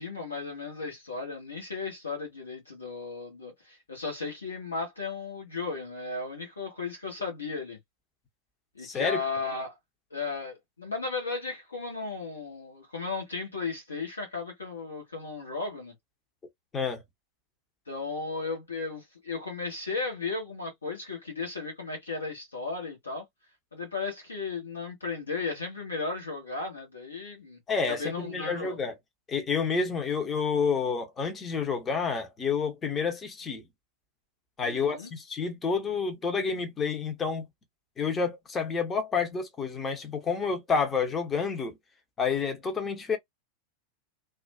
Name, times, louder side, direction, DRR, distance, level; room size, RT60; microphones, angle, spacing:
voice 1, 0.0-7.8 8.7-9.7 10.1-15.9 17.9-23.2 23.7-27.6 27.9-28.8 34.6-35.1, left 4 dB, 75° left, 1.1 m, -35 dB
voice 2, 8.8-9.2 16.7-17.0 27.7-28.9 29.3-33.6 34.6-37.4 38.0-41.8 42.2-43.2, left 5 dB, 20° left, 0.8 m, -29 dB
2.4 x 2.3 x 2.2 m
figure-of-eight pair, 90°, 0 cm